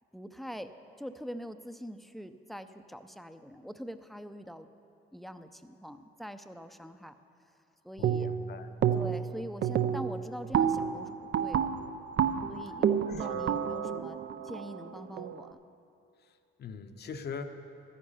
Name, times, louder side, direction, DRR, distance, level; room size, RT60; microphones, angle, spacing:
voice 1, 0.1-4.7 5.1-7.1 7.8-8.3 8.9-11.7 12.5-15.6, equal, ahead, 9 dB, 0.5 m, -43 dB
voice 2, 8.0-8.7 13.1-13.5 16.2-17.4, left 6 dB, 55° left, 6 dB, 0.8 m, -42 dB
sound 1, 8.0-8.5 8.8-9.3 9.6-15.4, right 8 dB, 60° right, 0.6 m, -29 dB
13.0 x 9.9 x 5.6 m, 2.7 s
cardioid pair, 90°, 20 cm